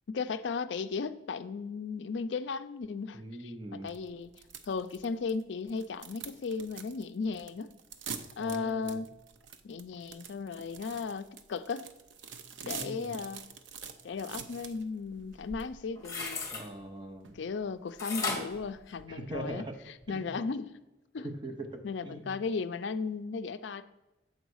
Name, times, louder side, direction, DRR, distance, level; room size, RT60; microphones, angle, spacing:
voice 1, 0.1-3.5 3.8-4.3 4.7-7.7 8.4-9.1 9.6-11.9 12.6-13.5 14.0-16.5 17.3-20.8 21.1-21.3 21.8-23.8, left 4 dB, 70° left, 12 dB, 0.4 m, -36 dB
voice 2, 3.1-3.9 8.4-9.0 12.6-13.2 16.5-17.4 19.1-19.7 20.1-20.4 21.4-22.4, right 2 dB, 25° right, 4 dB, 0.8 m, -42 dB
sound 1, 3.9-18.8, right 6 dB, 75° right, 0.6 m, -47 dB
sound 2, 15.7-16.7 18.0-19.6 20.0-20.1, left 3 dB, 15° left, 1.2 m, -36 dB
7.8 x 4.0 x 6.2 m, 0.98 s
head